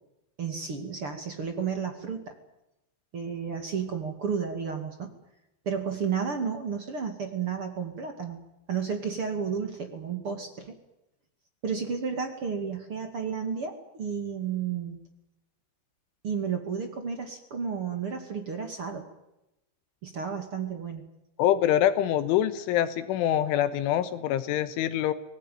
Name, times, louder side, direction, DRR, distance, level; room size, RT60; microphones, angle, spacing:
voice 1, 0.4-2.4 3.1-5.1 5.6-8.4 8.7-10.7 11.6-15.0 16.2-19.1 20.0-21.0, right 6 dB, 45° right, 6 dB, 1.9 m, -32 dB
voice 2, 21.4-25.1, left 11 dB, 75° left, 13 dB, 3.4 m, -25 dB
26.0 x 19.0 x 9.3 m, 0.92 s
omnidirectional pair, 6.0 m